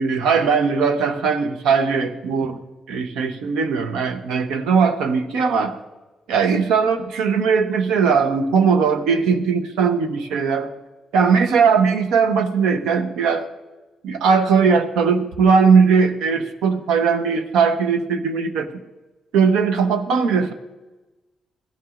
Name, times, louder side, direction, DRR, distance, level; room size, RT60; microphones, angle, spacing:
voice 1, 0.0-2.6 2.9-5.7 6.3-10.7 11.1-13.4 14.0-18.7 19.3-20.5, right 5 dB, 85° right, 8 dB, 0.9 m, -19 dB
16.0 x 12.5 x 2.5 m, 1.1 s
supercardioid pair, 60°, 0 cm